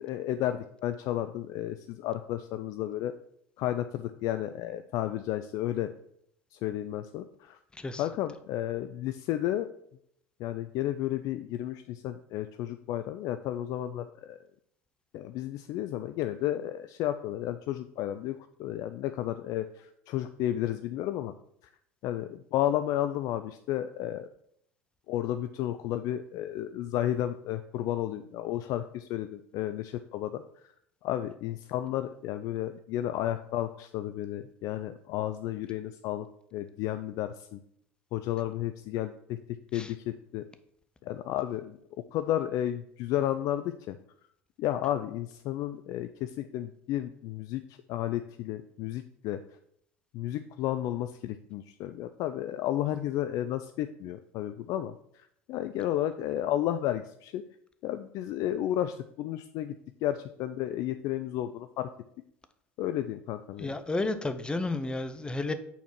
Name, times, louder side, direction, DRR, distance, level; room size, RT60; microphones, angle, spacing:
voice 1, 0.0-3.1 3.6-5.9 6.5-7.6 8.0-9.7 10.4-14.4 15.1-21.3 22.0-24.3 25.1-30.4 31.0-37.6 38.1-40.4 41.0-41.8 42.1-44.0 44.6-49.6 50.1-57.4 57.8-59.7 60.0-61.9 62.8-63.8, left 12 dB, 55° left, 10 dB, 0.3 m, -32 dB
voice 2, 63.6-65.5, left 2 dB, 15° left, 10 dB, 0.7 m, -31 dB
5.7 x 4.3 x 5.9 m, 0.70 s
hypercardioid pair, 70°, 7 cm